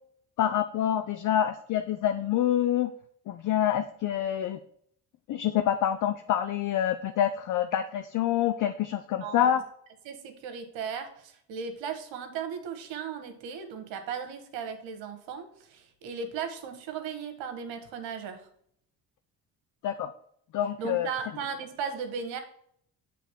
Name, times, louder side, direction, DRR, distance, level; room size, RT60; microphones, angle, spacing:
voice 1, 0.4-2.9 3.3-4.6 5.3-9.6 19.8-20.1 20.5-21.1, left 10 dB, 40° left, 9 dB, 0.5 m, -27 dB
voice 2, 10.0-18.5 20.8-22.4, right 6 dB, 60° right, 6 dB, 1.3 m, -36 dB
7.5 x 3.4 x 5.6 m, 0.65 s
figure-of-eight pair, 50°, 50 cm